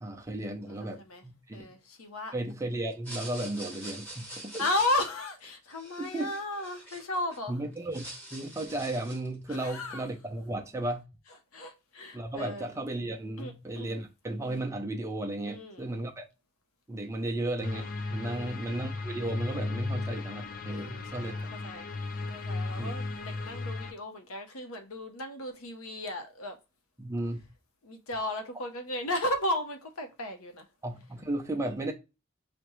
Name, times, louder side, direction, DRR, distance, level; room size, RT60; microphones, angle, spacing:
voice 1, 0.0-1.6 2.3-4.6 6.1-6.3 7.5-8.0 8.3-11.0 12.1-16.2 16.9-21.3 22.8-22.9 27.0-27.4 30.8-31.9, right 1 dB, 15° right, 0.5 m, -34 dB
voice 2, 0.7-1.2 1.5-2.3 4.6-7.5 9.5-10.0 11.5-12.7 13.4-14.0 15.4-15.9 18.2-18.6 20.7-21.9 22.3-26.6 27.8-30.7, left 1 dB, 80° left, 0.8 m, -35 dB
얼음흔드는쪼로록, 2.9-7.4 7.7-9.3, right 1 dB, 10° left, 1.2 m, -45 dB
sound 1, 17.6-23.9, left 3 dB, 40° left, 0.4 m, -35 dB
5.0 x 2.2 x 3.1 m
head